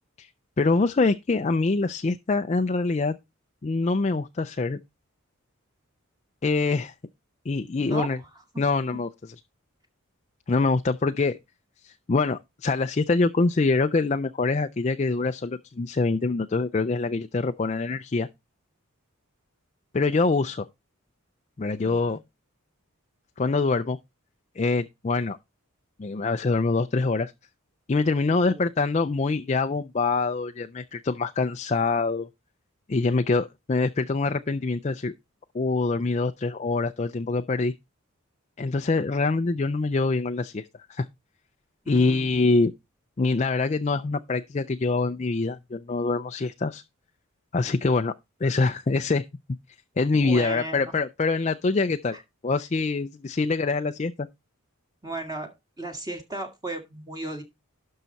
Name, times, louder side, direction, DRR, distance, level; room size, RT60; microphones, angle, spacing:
voice 1, 0.6-3.2 3.6-4.8 6.4-6.9 7.5-8.2 8.6-9.4 10.5-11.4 11.8-18.3 19.9-20.7 21.6-22.2 23.4-24.0 24.6-25.4 26.0-27.3 27.9-32.3 32.9-35.1 35.5-37.7 38.6-41.1 41.9-42.7 43.2-46.8 47.5-48.1 48.4-49.2 50.0-52.2 52.4-54.3, left 3 dB, 30° left, 0.4 m, -25 dB
voice 2, 7.8-8.2 21.8-22.2 28.3-28.7 41.9-42.4 50.1-50.9 52.1-52.2 55.0-55.5 55.8-57.4, right 2 dB, 15° right, 1.9 m, -35 dB
12.0 x 5.6 x 4.0 m
head